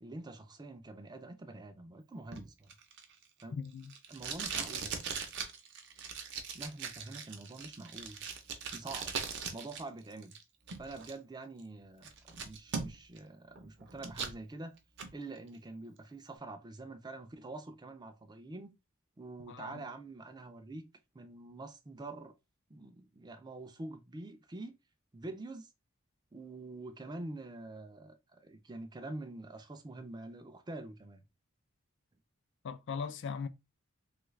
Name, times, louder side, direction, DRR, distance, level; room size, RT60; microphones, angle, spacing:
voice 1, 0.0-2.7 3.4-3.6 4.1-4.9 6.5-8.2 8.7-9.2 9.5-10.4 10.8-14.8 15.1-18.7 19.2-20.9 21.1-22.3 22.7-24.7 25.1-25.7 26.3-31.2, right 2 dB, 20° right, 0.4 m, -46 dB
Packing tape duct tape, 2.3-9.8 10.1-11.1 11.6-11.7 12.0-13.2 13.6-14.4 14.8-15.1, right 6 dB, 60° right, 0.6 m, -40 dB
voice 2, 3.5-3.9 19.5-19.8 32.6-33.5, left 6 dB, 60° left, 0.4 m, -39 dB
3.2 x 2.4 x 3.1 m
head